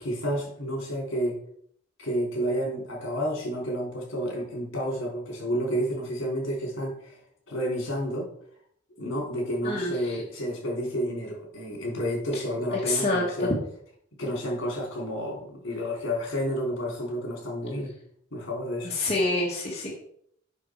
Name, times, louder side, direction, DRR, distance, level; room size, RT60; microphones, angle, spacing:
voice 1, 0.0-1.4 2.0-7.2 7.5-8.3 9.0-13.5 14.2-17.9 18.3-19.0, equal, 65° left, -1 dB, 3.8 m, -30 dB
voice 2, 9.6-10.2 12.3-12.4 12.7-13.5 18.8-20.0, left 2 dB, 30° left, -4 dB, 1.5 m, -27 dB
7.1 x 6.3 x 4.7 m, 0.66 s
head